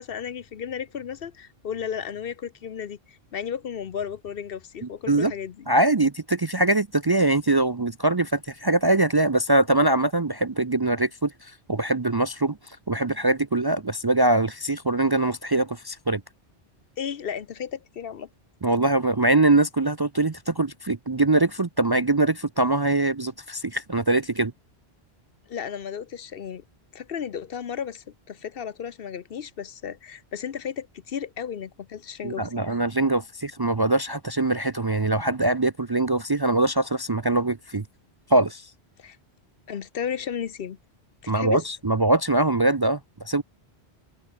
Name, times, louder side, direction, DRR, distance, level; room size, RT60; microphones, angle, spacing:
voice 1, 0.0-5.7 17.0-18.3 25.5-26.6 26.9-32.8 39.0-39.2 39.7-40.8 41.2-41.6, left 8 dB, 60° left, 1.0 m, -34 dB
voice 2, 4.8-5.3 5.7-16.2 18.6-24.5 32.2-37.8 38.3-38.7 41.3-43.4, right 2 dB, 30° right, 0.5 m, -23 dB
omnidirectional pair, 1.1 m